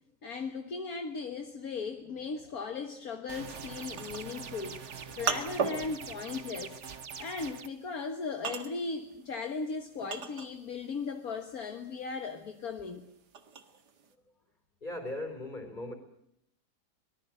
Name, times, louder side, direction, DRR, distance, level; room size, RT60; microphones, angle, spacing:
voice 1, 0.2-6.8 7.2-13.1, left 4 dB, 65° left, 6 dB, 1.9 m, -37 dB
sound 1, 3.3-7.7, right 6 dB, 50° right, 1.5 m, -44 dB
sound 2, 4.0-10.9 11.2-14.1, right 6 dB, 85° right, 2.3 m, -38 dB
voice 2, 14.8-15.9, left 1 dB, 30° left, 7 dB, 4.8 m, -38 dB
25.0 x 19.0 x 7.8 m, 0.73 s
omnidirectional pair, 1.7 m